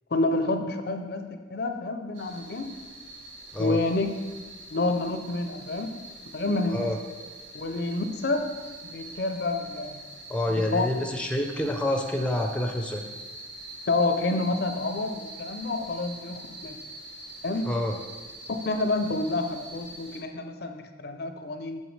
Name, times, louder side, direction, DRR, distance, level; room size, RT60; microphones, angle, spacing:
voice 1, 0.1-2.6 3.6-4.1 4.7-5.9 6.3-6.9 7.5-8.5 8.8-10.0 10.5-10.9 13.9-16.8 17.4-17.7 18.5-21.8, left 2 dB, 55° left, 7 dB, 0.5 m, -28 dB
sound 1, 2.1-20.2, right 2 dB, 75° right, 1.4 m, -44 dB
voice 2, 10.3-13.0 17.6-17.9, left 1 dB, 5° left, 3 dB, 0.5 m, -27 dB
8.0 x 6.7 x 3.2 m, 1.3 s
head